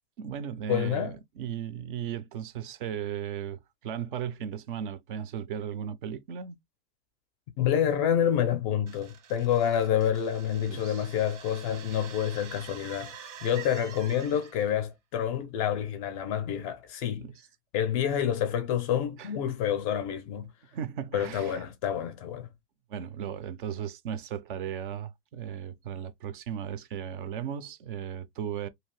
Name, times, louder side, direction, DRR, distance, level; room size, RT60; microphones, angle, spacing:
voice 1, 0.2-6.6 10.7-11.0 17.2-17.3 19.2-19.3 20.7-21.6 22.9-28.7, right 8 dB, 50° right, 0.4 m, -36 dB
voice 2, 0.7-1.2 7.6-17.3 17.7-20.5 21.1-22.5, left 9 dB, 30° left, 0.4 m, -28 dB
sound 1, 8.9-14.8, right 8 dB, 85° right, 1.1 m, -47 dB
2.8 x 2.5 x 3.1 m
supercardioid pair, 155°, 36 cm